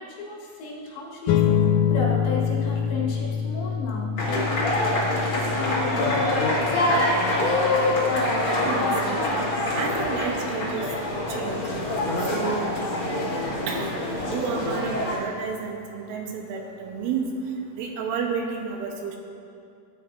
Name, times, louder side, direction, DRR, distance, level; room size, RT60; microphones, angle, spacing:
voice 1, 0.0-1.6 1.9-4.6 5.1-6.3, left 3 dB, 70° left, -4 dB, 3.8 m, -33 dB
sound 1, 1.3-12.0, left 8 dB, 90° left, 3.2 m, -28 dB
sound 2, 4.2-15.2, left 1 dB, 45° left, 2.3 m, -25 dB
voice 2, 8.4-9.2 9.7-10.9 11.3-11.7 12.3-12.7 13.7-13.9 14.2-17.3 17.8-19.2, right 6 dB, 80° right, 1 dB, 3.4 m, -31 dB
18.5 x 9.8 x 2.7 m, 2.4 s
omnidirectional pair, 5.7 m